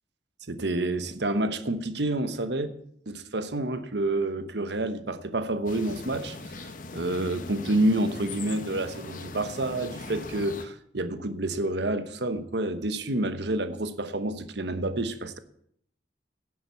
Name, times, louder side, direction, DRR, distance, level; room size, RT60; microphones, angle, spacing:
voice 1, 0.5-2.7 3.1-15.4, right 1 dB, 65° right, 1.0 m, -29 dB
sound 1, 5.7-10.7, left 3 dB, 45° left, 0.9 m, -40 dB
10.5 x 7.4 x 8.3 m
head